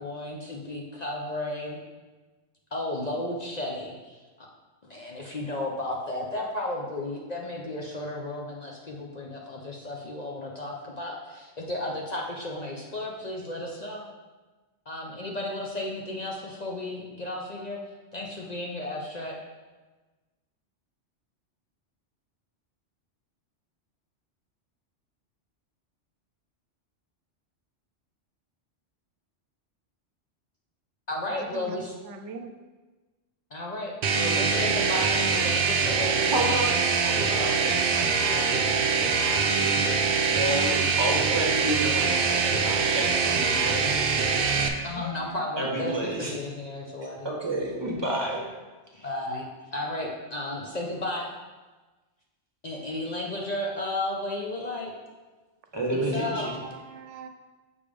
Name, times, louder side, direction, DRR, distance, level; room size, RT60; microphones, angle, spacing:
voice 1, 0.0-1.8 2.7-4.5 4.8-14.0 14.9-17.8 18.1-19.4 31.1-32.0 33.5-36.6 37.4-37.6 44.8-47.3 49.0-49.4 49.7-51.3 52.6-54.9 55.9-56.5, left 1 dB, 45° left, -2 dB, 0.7 m, -33 dB
voice 2, 31.3-32.5 45.0-45.4 56.2-57.3, right 4 dB, 90° right, 6 dB, 0.9 m, -42 dB
sound 1, 34.0-44.7, right 5 dB, 60° right, 0.7 m, -24 dB
voice 3, 36.3-37.4 37.6-44.3 45.6-46.3 47.0-48.5 48.9-49.1 55.7-56.5, right 1 dB, 25° right, -2 dB, 1.1 m, -31 dB
6.9 x 3.4 x 5.1 m, 1.3 s
omnidirectional pair, 1.2 m